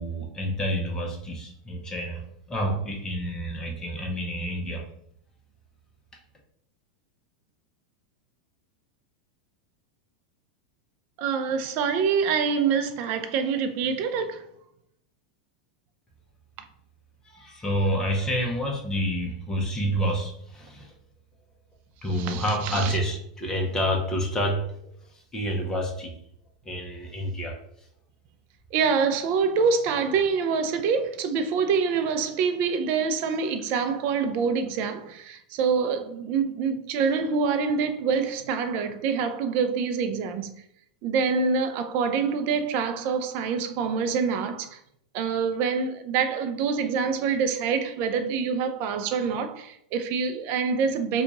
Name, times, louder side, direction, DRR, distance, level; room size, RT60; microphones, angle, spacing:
voice 1, 0.0-2.2 2.5-4.8 17.3-20.9 22.0-24.7 25.1-26.1 26.6-27.6, equal, 15° left, 0.9 m, -28 dB
voice 2, 11.2-14.5 22.1-23.0 28.7-40.5 41.0-44.8 45.1-51.2, right 5 dB, 50° right, 0.5 m, -26 dB
2.8 x 2.4 x 3.8 m
supercardioid pair, 125°, 4 cm